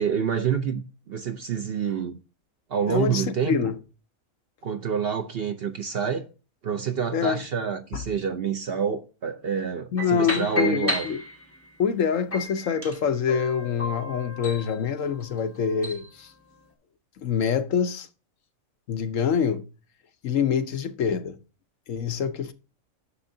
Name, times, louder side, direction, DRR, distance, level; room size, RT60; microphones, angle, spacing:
voice 1, 0.0-2.2 2.7-3.5 4.6-6.3 6.6-11.1, right 7 dB, 55° right, 0.7 m, -27 dB
voice 2, 2.9-3.8 7.1-7.4 7.9-8.0 9.9-11.2 11.8-16.3 17.2-18.1 18.9-19.7 20.2-21.4 21.9-22.5, left 7 dB, 65° left, 1.1 m, -25 dB
sound 1, 10.0-11.7 12.3-16.1, left 1 dB, 10° left, 1.4 m, -33 dB
9.7 x 6.6 x 2.7 m
omnidirectional pair, 1.5 m